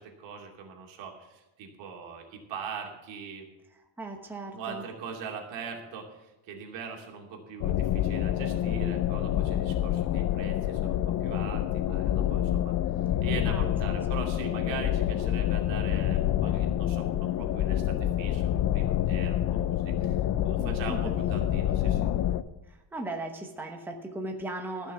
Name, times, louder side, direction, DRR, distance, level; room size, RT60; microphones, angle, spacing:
voice 1, 0.0-3.5 4.5-12.8 13.2-22.0, right 6 dB, 85° right, 1 dB, 2.6 m, -41 dB
voice 2, 4.0-4.8 13.5-14.3 20.6-21.3 21.7-22.0 22.7-24.9, right 2 dB, 5° right, 2 dB, 1.0 m, -38 dB
sound 1, 7.6-22.4, left 11 dB, 45° left, 0.5 m, -27 dB
14.5 x 6.2 x 8.0 m, 1.0 s
cardioid pair, 165°, 43 cm